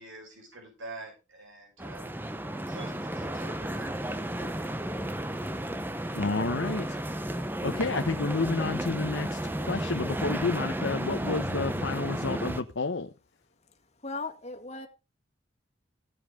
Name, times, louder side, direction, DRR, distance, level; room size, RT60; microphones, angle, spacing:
voice 1, 0.0-2.1 2.7-4.8, right 2 dB, 80° right, 6.2 m, -46 dB
sound 1, 1.8-12.6, right 1 dB, 10° right, 0.7 m, -33 dB
voice 2, 6.1-7.0 7.6-13.1, left 3 dB, 75° left, 0.8 m, -30 dB
voice 3, 14.0-14.9, left 3 dB, 35° left, 1.8 m, -37 dB
16.0 x 7.6 x 3.5 m
head